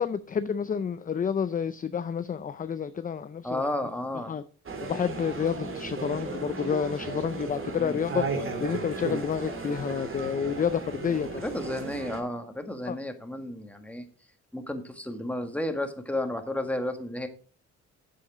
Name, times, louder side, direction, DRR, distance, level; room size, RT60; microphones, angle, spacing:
voice 1, 0.0-3.6 4.3-4.4 4.8-11.4 12.9-13.0, left 7 dB, 30° left, 13 dB, 0.5 m, -29 dB
voice 2, 3.4-4.4 7.8-8.0 11.2-14.1 14.5-17.3, left 1 dB, 5° left, 6 dB, 1.7 m, -32 dB
sound 1, 4.7-12.2, right 3 dB, 45° right, 2.6 m, -35 dB
8.4 x 7.8 x 4.8 m, 0.39 s
cardioid pair, 90°, 30 cm